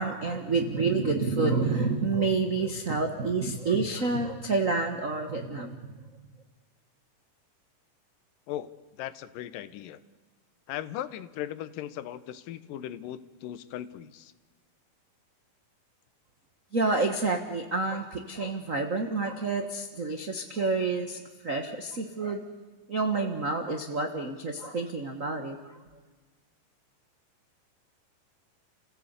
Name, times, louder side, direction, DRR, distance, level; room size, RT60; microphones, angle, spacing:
voice 1, 0.0-5.9 16.7-22.4 22.9-25.6, right 3 dB, 85° right, 5 dB, 0.7 m, -28 dB
voice 2, 9.0-10.0 10.7-14.3, left 12 dB, 90° left, 14 dB, 2.6 m, -38 dB
30.0 x 16.0 x 8.2 m, 1.3 s
omnidirectional pair, 3.8 m